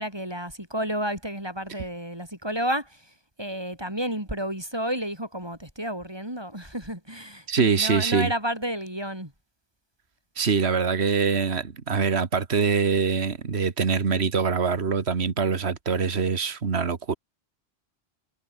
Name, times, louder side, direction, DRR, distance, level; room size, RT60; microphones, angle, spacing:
voice 1, 0.0-3.1 3.4-9.3, equal, 25° right, 5.3 m, -31 dB
voice 2, 7.5-8.3 10.4-17.1, right 5 dB, 75° right, 1.8 m, -24 dB
omnidirectional pair, 1.1 m